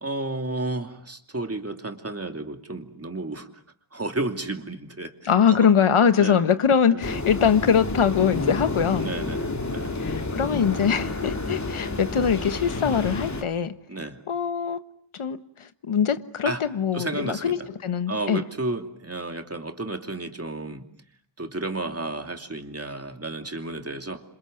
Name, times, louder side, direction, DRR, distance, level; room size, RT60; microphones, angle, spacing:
voice 1, 0.0-3.5 3.9-5.7 6.2-6.5 6.9-7.0 9.0-9.9 13.9-14.2 16.4-16.6 16.9-17.7 18.1-20.9 21.4-24.2, right 2 dB, 30° right, 2.8 m, -32 dB
voice 2, 5.2-9.1 10.0-13.7 14.3-14.8 15.1-18.4, left 7 dB, 80° left, 1.4 m, -22 dB
sound 1, 7.0-13.4, left 2 dB, 35° left, 2.8 m, -30 dB
27.5 x 27.0 x 7.8 m
wide cardioid pair, 90°, 49 cm